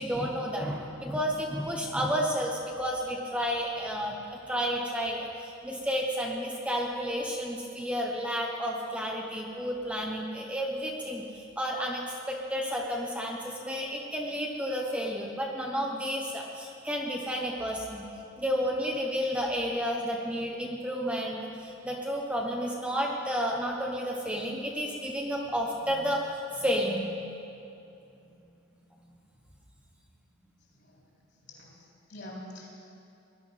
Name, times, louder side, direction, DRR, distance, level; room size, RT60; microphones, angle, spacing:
voice 1, 0.0-4.1 4.5-18.1 18.4-27.1, equal, 5° right, -1 dB, 1.0 m, -31 dB
voice 2, 31.5-32.7, left 1 dB, 55° left, -3 dB, 3.5 m, -45 dB
19.5 x 11.5 x 5.7 m, 2.7 s
head